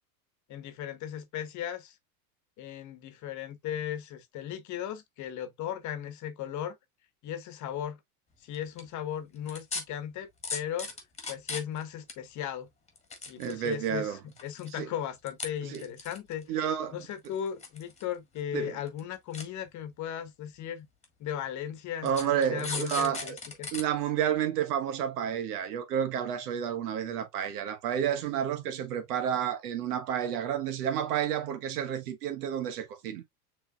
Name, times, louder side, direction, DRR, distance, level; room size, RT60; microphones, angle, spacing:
voice 1, 0.5-2.0 2.6-6.8 7.2-8.0 8.4-10.9 11.3-12.7 13.3-16.5 16.9-20.9 21.2-23.7, left 10 dB, 40° left, 1.1 m, -37 dB
sound 1, 8.5-8.8 9.5-9.8 10.4-11.8 12.1-12.2 12.9-13.8 14.3-14.8 15.3-15.5 15.7-16.4 17.2-18.1 18.4-18.5 18.9-19.0 19.3-19.4 20.3-20.4 21.0-21.1 22.1-23.8 24.2-24.3, left 4 dB, 15° left, 1.5 m, -37 dB
voice 2, 13.4-14.2 14.7-14.9 15.6-15.8 16.5-17.0 18.5-18.7 22.0-23.4 23.7-33.2, right 9 dB, 85° right, 1.4 m, -30 dB
6.7 x 3.4 x 2.3 m
supercardioid pair, 125°, 45 cm